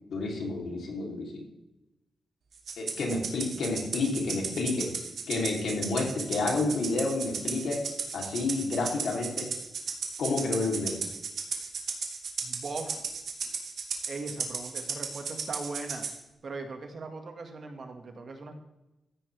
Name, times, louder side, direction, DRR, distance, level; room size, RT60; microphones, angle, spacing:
voice 1, 0.1-1.4 2.8-4.9 5.3-7.8 8.1-9.5 10.2-11.0, left 3 dB, 80° left, 0 dB, 3.3 m, -30 dB
Rattle (instrument), 2.7-16.2, right 5 dB, 70° right, 2.1 m, -35 dB
voice 2, 12.4-13.0 14.1-16.1 16.4-18.6, right 3 dB, 50° right, 4 dB, 1.9 m, -39 dB
14.5 x 9.9 x 3.5 m, 0.94 s
wide cardioid pair, 135°, 0 cm